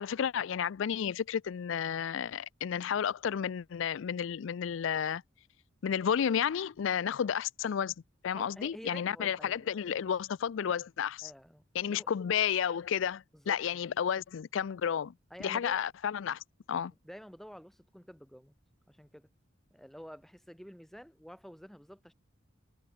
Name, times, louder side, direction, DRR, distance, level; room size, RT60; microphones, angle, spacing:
voice 1, 0.0-5.2 5.8-7.9 8.2-11.3 11.7-15.1 15.4-16.4 16.7-16.9, left 8 dB, 70° left, 0.4 m, -32 dB
voice 2, 8.3-9.7 11.2-11.6 11.9-12.1 13.3-13.8 15.3-15.8 17.0-18.5 18.9-19.3 19.7-22.1, equal, ahead, 6.4 m, -49 dB
head